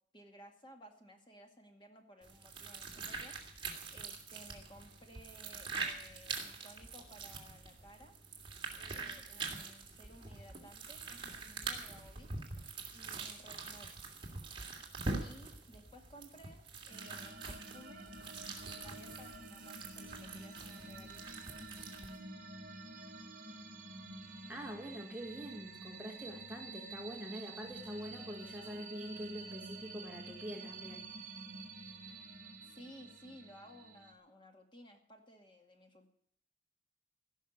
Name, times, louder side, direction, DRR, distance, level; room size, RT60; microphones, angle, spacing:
voice 1, 0.1-8.2 8.7-12.3 12.9-13.9 15.2-18.1 18.5-21.2 32.6-36.1, equal, 25° left, 3 dB, 2.1 m, -57 dB
sound 1, 2.2-22.2, right 4 dB, 25° right, 2.7 m, -44 dB
sound 2, 16.9-34.1, right 2 dB, 45° right, 1.8 m, -49 dB
voice 2, 24.5-31.1, equal, 5° right, 2 dB, 1.5 m, -45 dB
17.0 x 6.4 x 9.9 m, 0.68 s
head